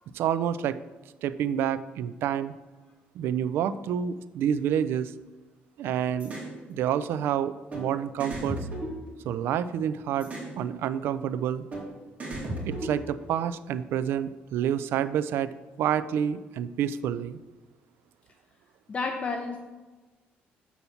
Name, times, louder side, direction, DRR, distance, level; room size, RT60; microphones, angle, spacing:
voice 1, 0.1-0.8 1.2-2.5 3.2-5.1 5.8-6.3 6.7-8.6 9.3-11.6 12.6-15.5 15.8-17.4, right 9 dB, 75° right, 14 dB, 0.3 m, -28 dB
sound 1, 6.2-6.5 7.7-7.8 8.2-9.6 10.2-10.5 11.7-11.8 12.2-13.3, right 1 dB, 35° right, 2.4 m, -35 dB
voice 2, 18.9-19.6, left 4 dB, 30° left, 3 dB, 0.7 m, -31 dB
7.1 x 4.1 x 5.8 m, 1.2 s
cardioid pair, 100°, 4 cm